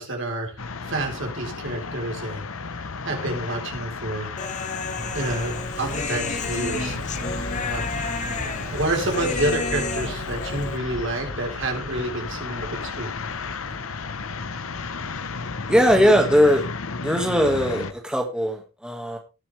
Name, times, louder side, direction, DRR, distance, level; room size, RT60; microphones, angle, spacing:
voice 1, 0.0-2.5 3.0-4.3 5.1-7.0 7.6-7.9 8.7-13.1, right 1 dB, 60° right, 3 dB, 3.9 m, -29 dB
sound 1, 0.6-17.9, left 4 dB, 70° left, 1.0 m, -33 dB
Human voice, 4.4-10.8, left 4 dB, 35° left, 1.1 m, -31 dB
sound 2, 5.0-14.9, right 1 dB, 45° right, 4.1 m, -38 dB
voice 2, 15.7-16.6 17.0-19.2, equal, 5° right, 2 dB, 1.8 m, -19 dB
18.5 x 7.6 x 3.3 m, 0.29 s
head